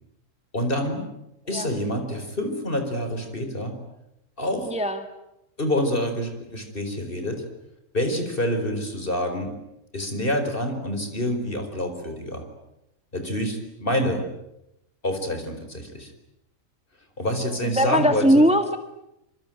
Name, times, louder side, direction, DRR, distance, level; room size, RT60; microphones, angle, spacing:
voice 1, 0.5-1.1 1.5-3.8 4.4-4.7 5.6-7.4 7.9-9.6 9.9-12.5 13.1-14.3 15.0-16.1 17.2-18.5, equal, 40° left, 6 dB, 4.9 m, -27 dB
voice 2, 4.7-5.0 17.6-18.8, equal, 5° right, 7 dB, 1.5 m, -20 dB
26.0 x 24.5 x 9.2 m, 0.86 s
omnidirectional pair, 1.4 m